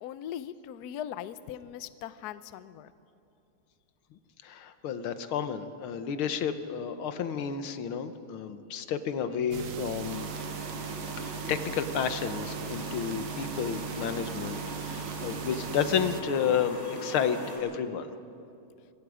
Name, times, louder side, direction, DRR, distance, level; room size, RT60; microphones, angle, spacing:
voice 1, 0.0-2.9, left 10 dB, 70° left, 14 dB, 1.0 m, -40 dB
voice 2, 4.4-10.3 11.2-18.1, left 7 dB, 85° left, 10 dB, 1.9 m, -31 dB
sound 1, 9.5-16.2, right 10 dB, 65° right, 0.8 m, -39 dB
sound 2, 10.0-17.6, equal, 40° left, 6.8 m, -40 dB
26.0 x 23.0 x 5.0 m, 2.6 s
omnidirectional pair, 2.2 m